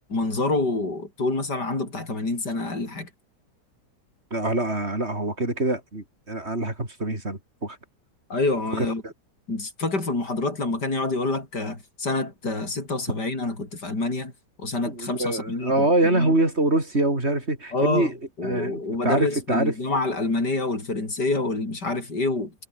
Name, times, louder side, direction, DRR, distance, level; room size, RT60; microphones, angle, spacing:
voice 1, 0.1-3.1 8.3-9.0 9.5-14.3 14.6-16.3 17.7-18.1 18.4-22.5, left 2 dB, 65° left, 6.8 m, -27 dB
voice 2, 4.3-7.8 8.7-9.1 14.9-18.2 18.4-19.7, right 2 dB, 35° right, 5.4 m, -25 dB
omnidirectional pair, 1.9 m